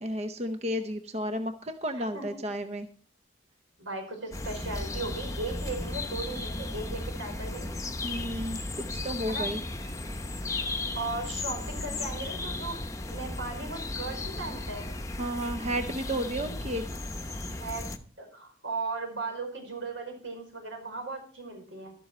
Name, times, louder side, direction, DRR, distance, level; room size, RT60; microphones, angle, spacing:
voice 1, 0.0-2.9 8.0-9.6 15.2-16.8, equal, 35° right, 8 dB, 0.7 m, -32 dB
voice 2, 1.9-2.4 3.8-7.7 9.3-9.5 10.9-14.9 17.6-17.9 18.2-21.9, right 3 dB, 80° right, 2 dB, 5.2 m, -37 dB
sound 1, 4.3-18.0, left 2 dB, 15° left, 0.9 m, -35 dB
12.5 x 12.5 x 4.3 m, 0.43 s
head